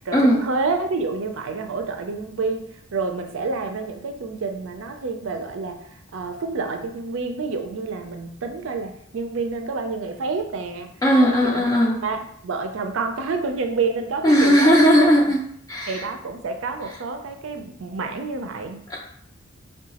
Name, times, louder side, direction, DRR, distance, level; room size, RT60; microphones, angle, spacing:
voice 1, 0.0-11.7 12.0-14.9 15.3-15.4 15.9-18.8, right 4 dB, 75° right, 5 dB, 0.5 m, -28 dB
voice 2, 11.0-12.0 14.2-16.0 18.9-19.0, equal, 20° left, -3 dB, 0.4 m, -17 dB
4.6 x 2.3 x 2.8 m, 0.69 s
head